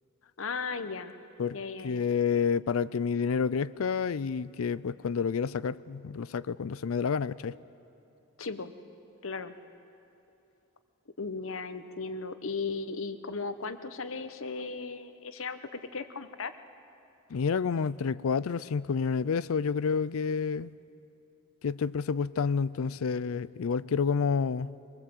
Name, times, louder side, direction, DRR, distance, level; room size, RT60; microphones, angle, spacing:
voice 1, 0.4-1.1 1.5-2.0 8.4-8.7 9.2-9.5 11.2-16.5, left 4 dB, 70° left, 11 dB, 1.0 m, -36 dB
voice 2, 1.8-7.6 17.3-20.7 21.6-24.7, left 6 dB, 90° left, 17 dB, 0.5 m, -29 dB
24.5 x 20.0 x 7.9 m, 2.8 s
head